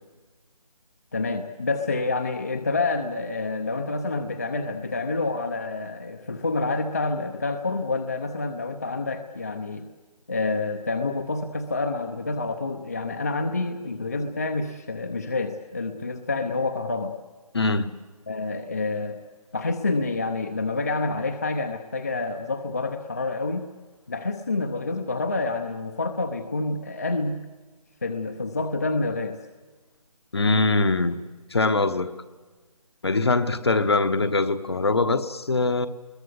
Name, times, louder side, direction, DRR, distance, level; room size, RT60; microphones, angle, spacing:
voice 1, 1.1-9.9 10.3-17.1 18.3-19.2 19.5-23.6 24.1-27.4 28.0-29.4, left 3 dB, 25° left, 0.8 m, -28 dB
voice 2, 17.5-17.9 30.3-31.2 31.5-32.1 33.0-35.9, left 3 dB, 45° left, 1.2 m, -22 dB
29.5 x 22.0 x 8.2 m
figure-of-eight pair, 175°, 19 cm